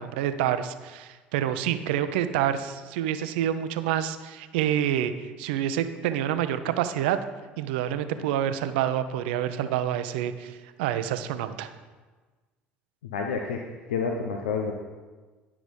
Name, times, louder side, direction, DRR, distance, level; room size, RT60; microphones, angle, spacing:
voice 1, 0.0-7.2 7.6-11.7, right 10 dB, 70° right, 11 dB, 0.6 m, -27 dB
voice 2, 13.0-14.7, left 5 dB, 80° left, 2 dB, 0.7 m, -29 dB
10.0 x 6.1 x 5.1 m, 1.3 s
figure-of-eight pair, 60°, 6 cm